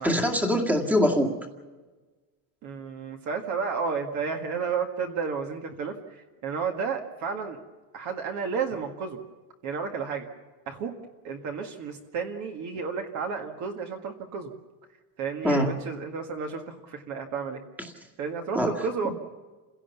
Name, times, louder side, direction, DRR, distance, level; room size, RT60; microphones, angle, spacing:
voice 1, 0.0-1.4 15.4-15.8 18.5-18.7 19.0-19.1, equal, 5° right, 3 dB, 2.0 m, -23 dB
voice 2, 2.6-7.6 7.9-9.2 9.6-10.3 10.7-10.9 11.2-14.5 15.2-17.6 18.2-19.1, right 5 dB, 40° right, 4 dB, 1.9 m, -32 dB
28.5 x 17.0 x 7.1 m, 1.3 s
cardioid pair, 165°, 46 cm